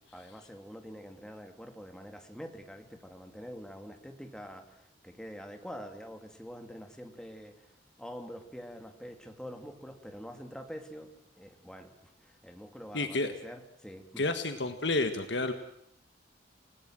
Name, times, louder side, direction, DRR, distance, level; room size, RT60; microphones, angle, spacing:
voice 1, 0.1-7.7 8.0-14.2, equal, 5° left, 5 dB, 2.5 m, -46 dB
voice 2, 12.9-13.3 14.2-15.5, left 2 dB, 70° left, 8 dB, 1.6 m, -30 dB
29.5 x 18.0 x 7.8 m, 0.76 s
head